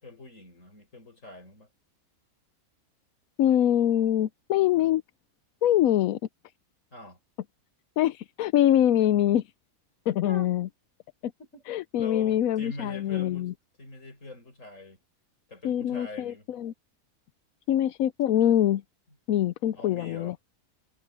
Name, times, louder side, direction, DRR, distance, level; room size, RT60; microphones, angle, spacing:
voice 1, 0.0-1.7 6.9-7.2 10.1-10.5 11.4-11.6 11.9-13.5 13.8-15.0 15.5-16.5 19.7-20.3, left 2 dB, 55° left, 5.9 m, -43 dB
voice 2, 3.4-5.0 5.6-6.2 8.0-9.4 10.1-10.7 11.2-11.3 11.7-13.5 15.6-16.7 17.7-18.8 19.3-20.3, left 11 dB, 75° left, 1.0 m, -24 dB
omnidirectional pair, 1.6 m